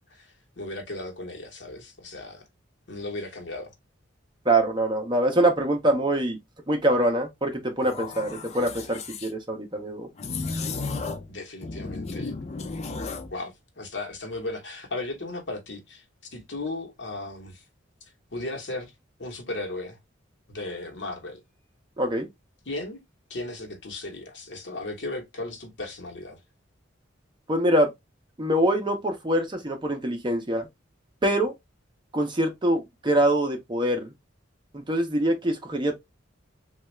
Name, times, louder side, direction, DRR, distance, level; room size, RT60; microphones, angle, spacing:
voice 1, 0.1-2.4 2.9-3.7 11.3-12.3 13.3-16.0 16.3-17.6 18.3-18.9 19.2-20.0 20.5-21.4 22.6-23.0 23.3-26.4, left 2 dB, 60° left, 1.0 m, -36 dB
voice 2, 4.5-6.4 6.7-10.1 22.0-22.3 27.5-27.9 28.4-30.7 31.2-31.5 32.1-34.1 34.7-36.0, right 1 dB, 25° right, 0.7 m, -24 dB
sound 1, 7.8-9.3 10.2-11.3 11.6-13.3, left 4 dB, 35° left, 0.4 m, -34 dB
3.3 x 2.3 x 3.1 m
head